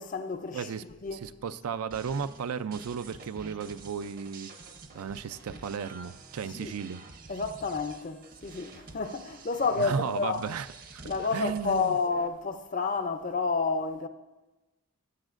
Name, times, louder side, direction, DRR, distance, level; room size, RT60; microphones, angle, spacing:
voice 1, 0.0-0.7 1.0-1.2 6.5-6.7 7.3-10.4 11.0-14.1, left 4 dB, 35° left, 0.5 m, -30 dB
voice 2, 0.5-0.8 1.1-4.5 4.9-7.0 9.8-10.7 10.9-11.0 11.3-12.0, right 6 dB, 85° right, 0.4 m, -34 dB
sound 1, 1.9-12.3, right 3 dB, 40° right, 0.7 m, -49 dB
15.0 x 10.5 x 2.5 m
head